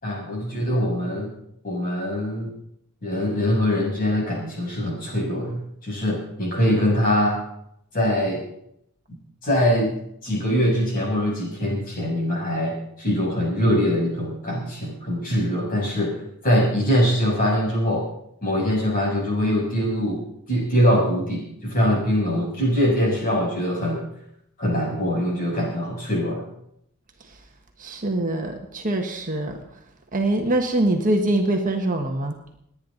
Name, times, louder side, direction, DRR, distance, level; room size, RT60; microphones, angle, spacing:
voice 1, 0.0-1.3 1.6-2.5 3.0-7.4 7.9-8.4 9.4-9.9 10.2-18.1 18.4-20.2 20.5-24.0 24.6-26.4, equal, 40° left, -3 dB, 7.2 m, -23 dB
voice 2, 27.8-29.6 30.1-32.3, right 1 dB, 35° right, 3 dB, 1.5 m, -23 dB
29.0 x 9.9 x 4.0 m, 0.75 s
head